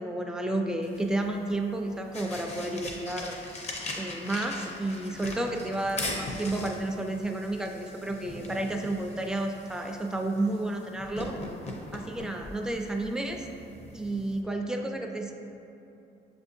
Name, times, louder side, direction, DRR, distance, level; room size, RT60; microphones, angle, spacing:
voice 1, 0.0-3.4 4.0-11.4 11.9-13.5 13.9-15.3, right 2 dB, 5° right, 3 dB, 0.3 m, -31 dB
sound 1, 0.8-14.4, left 2 dB, 35° left, 0.6 m, -41 dB
6.8 x 2.6 x 2.6 m, 2.8 s
cardioid pair, 90°, 20 cm